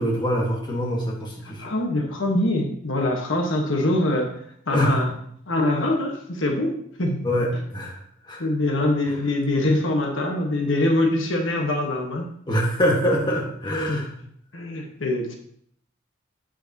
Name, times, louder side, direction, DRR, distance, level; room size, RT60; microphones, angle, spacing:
voice 1, 0.0-1.7 4.7-5.0 7.2-8.0 8.3-8.4 12.5-14.1, equal, 25° left, -2 dB, 1.6 m, -24 dB
voice 2, 1.4-4.3 4.7-5.1 5.5-7.2 7.5-7.6 8.4-12.2 13.9-14.2 14.5-15.3, left 1 dB, 85° left, 2 dB, 1.4 m, -24 dB
8.8 x 8.7 x 2.9 m, 0.66 s
head